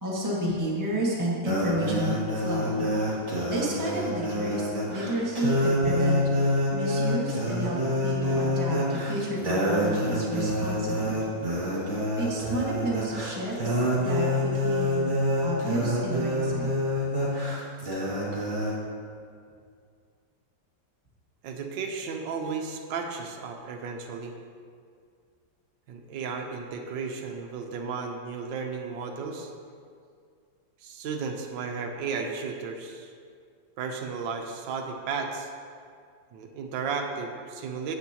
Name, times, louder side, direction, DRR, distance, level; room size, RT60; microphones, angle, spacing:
voice 1, 0.0-3.2 3.5-6.2 6.7-11.2 12.2-15.2 15.4-16.7, right 1 dB, 10° right, -5 dB, 1.3 m, -31 dB
sound 1, 1.4-18.7, left 1 dB, 35° right, 2.7 m, -27 dB
voice 2, 21.4-24.4 25.9-29.5 30.8-33.1 33.8-35.5 36.3-37.9, right 5 dB, 70° right, 3 dB, 1.5 m, -34 dB
10.0 x 8.1 x 2.9 m, 2.2 s
omnidirectional pair, 2.2 m